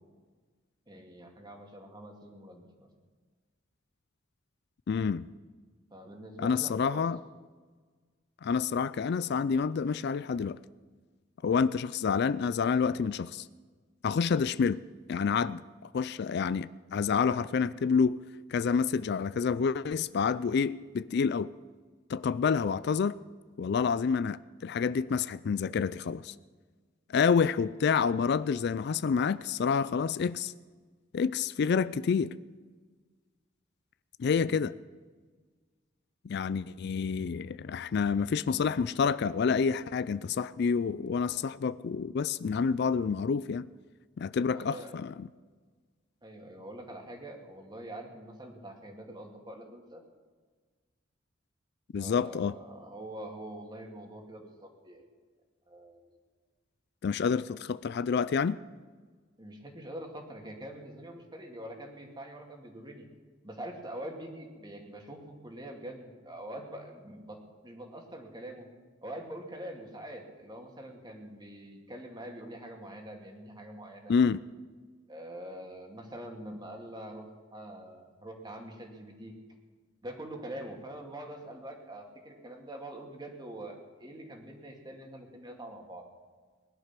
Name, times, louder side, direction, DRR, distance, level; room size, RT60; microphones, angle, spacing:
voice 1, 0.9-2.9 5.9-7.1 34.4-34.7 44.5-45.0 46.2-50.0 52.0-55.0 55.7-56.0 59.4-63.1 63.4-67.4 67.6-68.7 69.0-74.1 75.1-79.3 80.0-86.0, right 1 dB, 20° right, 2.3 m, -44 dB
voice 2, 4.9-5.3 6.4-7.2 8.4-10.6 11.4-13.5 14.0-14.8 15.1-18.2 18.5-21.5 22.1-23.2 23.6-26.3 27.1-30.5 31.1-32.4 34.2-34.7 36.2-43.7 44.2-45.3 51.9-52.5 57.0-58.6 74.1-74.4, left 6 dB, 55° left, 0.4 m, -28 dB
20.0 x 11.0 x 5.9 m
head